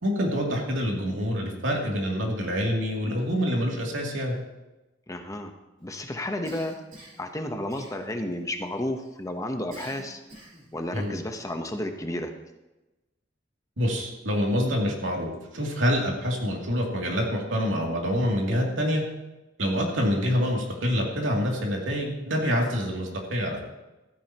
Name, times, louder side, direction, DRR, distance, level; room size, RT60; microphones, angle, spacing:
voice 1, 0.0-4.4 10.9-11.1 13.8-19.0 19.6-23.6, equal, 85° right, -1 dB, 2.7 m, -26 dB
voice 2, 5.1-5.5 5.8-6.7 7.2-10.2 10.7-12.3, left 1 dB, 15° left, 5 dB, 0.9 m, -32 dB
Cough, 6.4-7.3 7.7-8.3 9.7-10.7, right 1 dB, 45° right, 3.7 m, -45 dB
14.0 x 13.5 x 3.0 m, 1.0 s
head